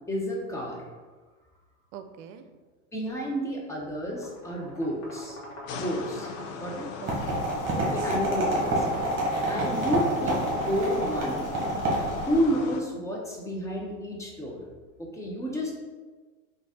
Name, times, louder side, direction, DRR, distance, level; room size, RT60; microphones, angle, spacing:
voice 1, 0.1-0.9 2.9-5.4 5.7-6.9 7.9-8.9 9.5-11.5 12.3-14.6 15.0-15.7, equal, 10° left, -2 dB, 0.7 m, -30 dB
voice 2, 1.9-2.5 7.0-8.1 9.5-9.9, right 6 dB, 70° right, 9 dB, 0.5 m, -43 dB
sound 1, 4.0-9.8, left 1 dB, 45° left, 1.3 m, -46 dB
sound 2, 5.7-12.8, left 5 dB, 65° left, 0.6 m, -39 dB
sound 3, 7.1-12.5, right 1 dB, 30° right, 1.5 m, -28 dB
3.8 x 2.6 x 3.7 m, 1.4 s
supercardioid pair, 120°, 39 cm